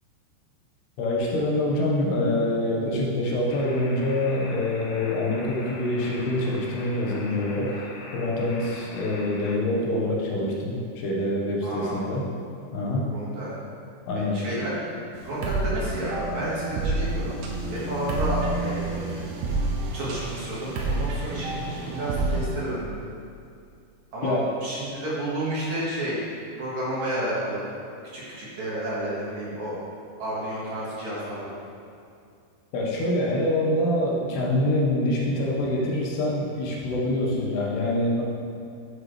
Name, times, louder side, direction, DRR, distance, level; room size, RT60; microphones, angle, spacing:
voice 1, 1.0-12.3 12.7-13.1 14.1-14.4 24.2-24.5 32.7-38.2, left 1 dB, 90° left, -3 dB, 3.4 m, -25 dB
sound 1, 3.5-9.6, left 2 dB, 70° left, 2.1 m, -42 dB
voice 2, 11.6-12.0 13.1-13.5 14.2-14.9 15.2-17.4 17.7-19.2 19.9-23.0 24.1-24.4 24.6-26.2 26.6-27.6 28.1-29.8 30.2-31.5, right 1 dB, 55° right, -8 dB, 2.6 m, -31 dB
sound 2, 15.2-22.4, right 2 dB, 85° right, 3.0 m, -29 dB
10.5 x 7.3 x 3.2 m, 2.4 s
omnidirectional pair, 4.6 m